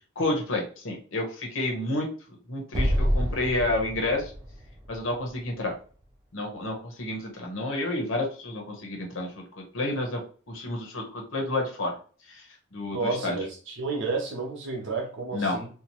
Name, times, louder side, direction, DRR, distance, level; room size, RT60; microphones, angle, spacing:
voice 1, 0.2-2.1 2.5-4.3 4.9-5.7 6.3-10.2 10.5-11.9 12.3-12.4 12.7-13.4 15.3-15.6, left 2 dB, 70° left, 1 dB, 0.8 m, -30 dB
Explosion, 2.7-6.0, equal, 15° right, 0.5 m, -28 dB
voice 2, 12.9-15.7, right 3 dB, 60° right, 1 dB, 0.8 m, -31 dB
2.8 x 2.0 x 2.9 m, 0.40 s
head